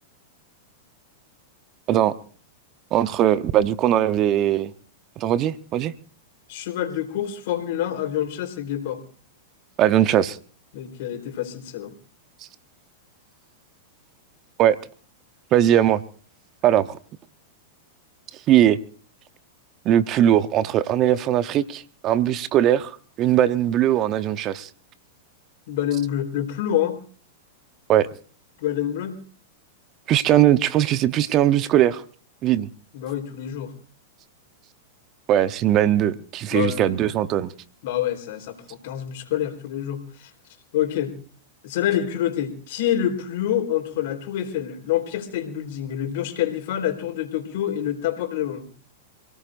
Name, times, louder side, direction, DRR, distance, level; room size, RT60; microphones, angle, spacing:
voice 1, 2.9-4.7 5.2-5.9 9.8-10.4 14.6-14.8 15.5-16.0 16.6-17.0 18.5-18.8 19.8-24.7 27.9-28.1 30.1-32.0 32.4-32.7 35.3-37.5, right 11 dB, 40° right, 0.9 m, -20 dB
voice 2, 6.5-9.0 10.7-11.9 25.7-27.0 28.6-29.2 32.9-33.7 36.5-37.0 37.8-40.3 40.7-41.1 41.6-48.7, left 11 dB, 60° left, 4.0 m, -27 dB
28.5 x 18.0 x 2.6 m
hypercardioid pair, 105°, 0 cm